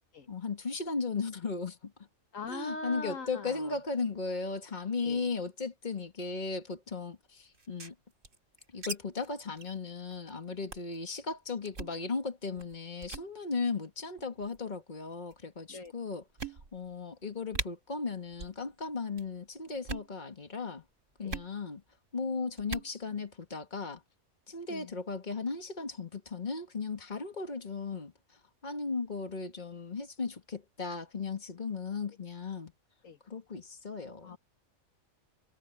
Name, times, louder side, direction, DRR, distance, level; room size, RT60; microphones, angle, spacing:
voice 1, 0.3-1.9 2.5-7.9 8.7-16.2 16.7-20.8 21.2-21.8 22.1-24.0 24.5-28.1 28.6-32.7 33.3-34.4, left 4 dB, 35° left, 2.0 m, -36 dB
voice 2, 2.3-3.8 5.0-5.3 15.7-15.9 21.2-21.4 24.7-24.9 33.0-33.2 34.2-34.4, left 3 dB, 80° left, 2.0 m, -41 dB
sound 1, 7.5-9.0 9.2-9.3 9.6-9.8 10.1-10.3 10.7-11.0 11.6-12.0 12.6-12.7 13.0-13.3 14.2-14.6 15.3-15.4 15.8-15.9 16.4-16.9 17.2-17.3 17.5-17.7 18.3-18.6 18.9-19.3 19.7-20.1 21.3-21.5 22.6-22.9, right 3 dB, 75° right, 3.3 m, -40 dB
omnidirectional pair, 1.3 m